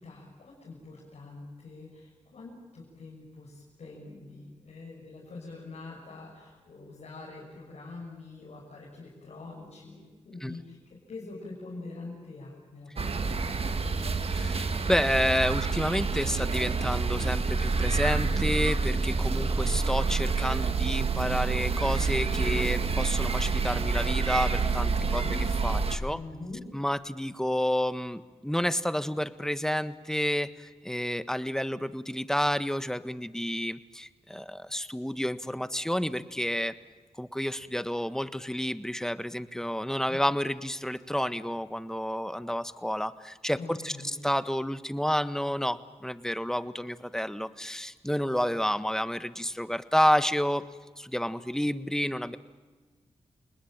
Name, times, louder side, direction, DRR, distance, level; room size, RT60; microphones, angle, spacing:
voice 1, 0.0-14.3 24.9-25.5 26.1-26.6 40.1-40.2 43.5-44.2, left 3 dB, 75° left, -4 dB, 6.6 m, -45 dB
sound 1, 13.0-26.0, right 4 dB, 60° right, 1.9 m, -28 dB
voice 2, 14.3-25.2 25.6-26.2 26.7-36.7 37.2-50.6 51.0-52.4, equal, 5° left, 13 dB, 1.4 m, -30 dB
29.0 x 20.0 x 8.9 m, 1.3 s
cardioid pair, 45°, 11 cm